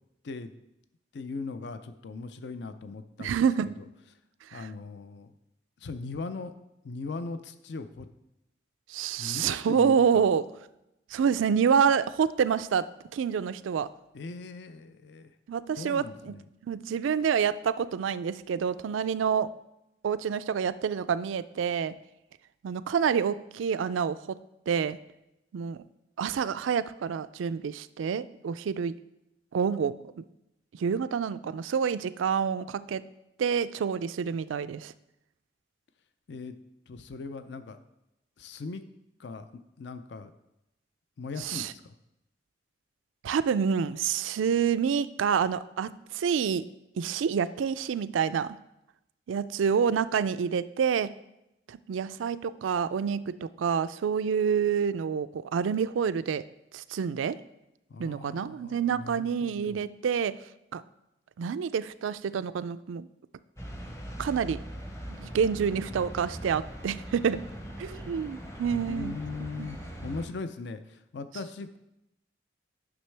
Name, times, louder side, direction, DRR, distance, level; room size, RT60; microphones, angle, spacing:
voice 1, 1.1-3.4 4.5-5.3 5.8-6.5 6.8-8.1 9.2-10.3 14.1-15.3 15.8-16.4 36.3-36.5 36.9-37.8 38.4-38.8 39.2-39.5 39.8-40.3 41.2-42.0 57.9-59.9 68.7-71.8, left 3 dB, 65° left, 11 dB, 0.4 m, -39 dB
voice 2, 3.2-3.7 4.5-4.7 8.9-10.4 11.1-12.8 13.1-13.9 15.5-16.3 16.6-19.5 20.0-21.9 22.6-24.2 24.7-25.0 25.5-25.8 26.2-28.9 29.5-30.2 30.8-33.0 33.4-34.9 41.4-41.7 43.2-46.6 47.0-48.5 49.3-51.1 51.7-56.4 56.7-57.4 58.0-60.4 60.7-60.8 61.4-63.1 64.2-64.6 65.2-67.4 67.8-69.2 69.6-69.7, right 7 dB, 90° right, 15 dB, 0.3 m, -27 dB
sound 1, 63.6-70.3, equal, 15° left, 0.7 m, -41 dB
9.5 x 6.2 x 3.3 m, 0.87 s
head